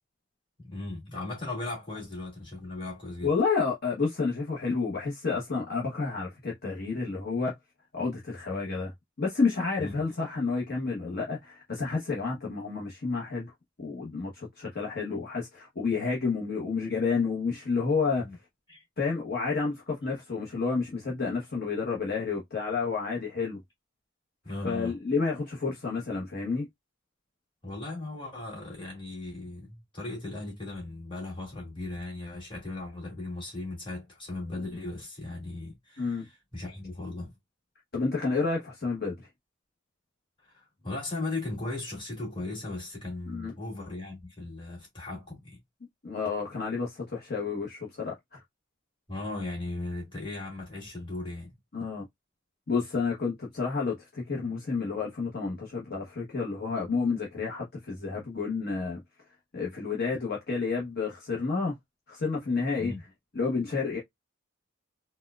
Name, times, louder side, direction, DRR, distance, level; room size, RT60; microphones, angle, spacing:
voice 1, 0.6-3.3 9.8-9.9 18.2-18.4 18.7-18.8 24.4-24.9 27.6-37.3 40.4-45.6 49.1-51.6 62.7-63.0, left 2 dB, 25° left, 2.1 m, -37 dB
voice 2, 3.2-7.5 7.9-8.9 9.2-13.5 13.8-18.3 19.0-23.6 24.6-26.7 36.0-36.2 37.9-39.3 43.3-43.5 46.0-48.4 51.7-52.0 52.7-59.0 59.5-61.7 62.1-62.9 63.3-64.0, left 4 dB, 50° left, 0.9 m, -30 dB
4.2 x 2.2 x 2.3 m
head